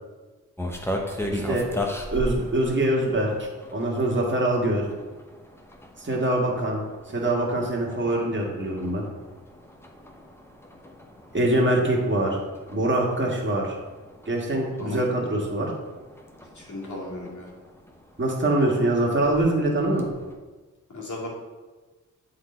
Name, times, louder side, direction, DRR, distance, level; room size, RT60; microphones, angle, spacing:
sound 1, 0.6-20.3, left 1 dB, 5° left, 0.9 m, -38 dB
voice 1, 1.3-1.7 2.1-3.3 3.7-4.8 6.0-6.8 7.1-9.0 11.3-12.4 12.7-13.8 14.3-15.7 18.2-20.0, right 1 dB, 35° right, -2 dB, 1.8 m, -24 dB
voice 2, 16.5-17.5 20.9-21.3, left 2 dB, 60° left, -4 dB, 2.2 m, -35 dB
7.9 x 4.0 x 4.4 m, 1.3 s
cardioid pair, 70°, 32 cm